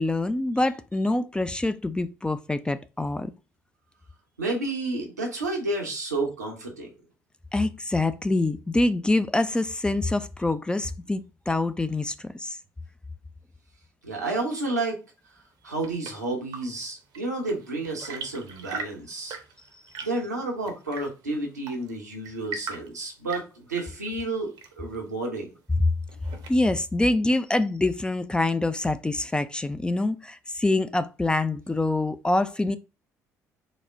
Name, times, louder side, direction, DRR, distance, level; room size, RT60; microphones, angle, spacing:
voice 1, 0.0-3.3 7.5-12.6 26.5-32.8, left 2 dB, 10° left, 0.3 m, -25 dB
voice 2, 4.4-6.9 14.0-15.0 15.6-19.4 20.0-24.5 24.8-25.5, right 2 dB, 90° right, 0.8 m, -30 dB
Chirp tweet / Engine / Tap, 15.4-26.9, right 4 dB, 55° right, 0.7 m, -42 dB
4.1 x 2.1 x 3.3 m
figure-of-eight pair, 55°, 9 cm